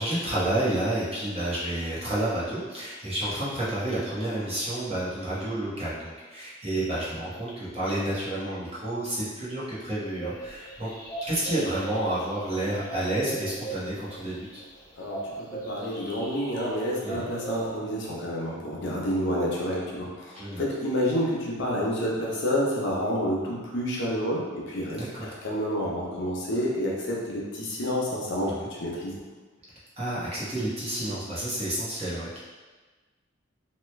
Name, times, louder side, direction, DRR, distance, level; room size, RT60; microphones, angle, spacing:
voice 1, 0.0-10.9 11.3-14.6 17.0-17.3 20.3-20.6 25.0-25.3 28.4-28.7 30.0-32.4, right 1 dB, 30° right, -9 dB, 0.9 m, -30 dB
sound 1, 10.0-17.6, right 3 dB, 15° left, 0.6 m, -39 dB
voice 2, 15.0-29.2, equal, 60° left, -4 dB, 0.7 m, -29 dB
2.8 x 2.3 x 3.2 m, 1.3 s
head